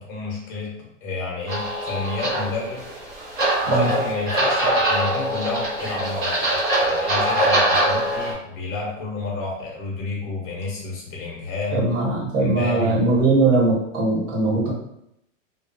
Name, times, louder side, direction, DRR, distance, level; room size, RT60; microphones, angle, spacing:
voice 1, 0.0-2.8 3.6-11.8 12.4-13.0, left 3 dB, 35° left, -3 dB, 1.0 m, -30 dB
sound 1, 1.5-8.3, right 1 dB, 25° right, 0.9 m, -23 dB
voice 2, 11.7-14.7, right 2 dB, 65° right, -4 dB, 1.1 m, -20 dB
2.3 x 2.2 x 2.6 m, 0.80 s
hypercardioid pair, 125°, 39 cm